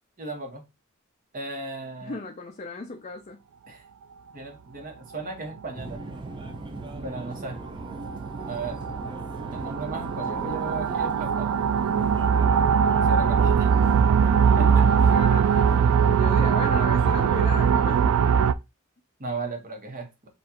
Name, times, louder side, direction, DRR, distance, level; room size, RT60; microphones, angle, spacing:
voice 1, 0.2-0.7 1.3-2.2 3.7-3.8 4.3-6.0 7.0-7.6 8.5-8.8 9.5-11.5 13.0-13.7 14.6-14.9 19.2-20.1, right 3 dB, 40° right, 1.2 m, -35 dB
voice 2, 2.0-3.4 14.1-14.6 15.0-15.8 16.1-18.1, left 3 dB, 35° left, 0.5 m, -36 dB
sound 1, 5.6-5.7 6.4-6.6 7.0-7.1 7.6-18.5, right 7 dB, 85° right, 0.3 m, -21 dB
Subway metro underground, 5.7-17.7, right 1 dB, 25° right, 0.5 m, -39 dB
6.8 x 2.6 x 2.9 m
head